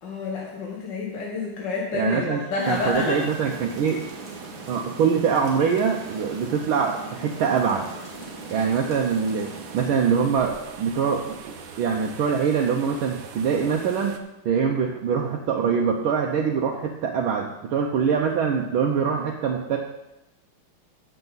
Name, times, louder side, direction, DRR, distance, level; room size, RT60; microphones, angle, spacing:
voice 1, 0.0-3.2, left 3 dB, 60° left, -2 dB, 2.0 m, -28 dB
voice 2, 1.9-2.4 2.7-4.1 4.7-7.8 8.5-14.1 14.4-19.8, right 6 dB, 75° right, 1 dB, 1.6 m, -24 dB
sound 1, 2.6-9.9, right 1 dB, 20° left, 2.2 m, -41 dB
sound 2, 2.6-14.2, right 6 dB, 55° right, 1.0 m, -42 dB
16.0 x 6.8 x 4.1 m, 0.93 s
omnidirectional pair, 2.3 m